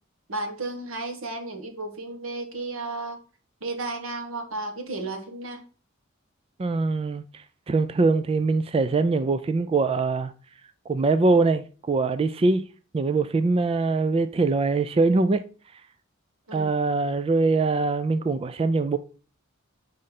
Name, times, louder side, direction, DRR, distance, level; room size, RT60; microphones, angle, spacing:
voice 1, 0.3-3.2 3.6-5.6 16.5-16.7, right 2 dB, 90° right, 1.4 m, -33 dB
voice 2, 6.6-10.3 10.9-12.6 12.9-15.4 16.5-19.0, right 3 dB, 30° right, 0.3 m, -23 dB
5.4 x 3.8 x 5.7 m
head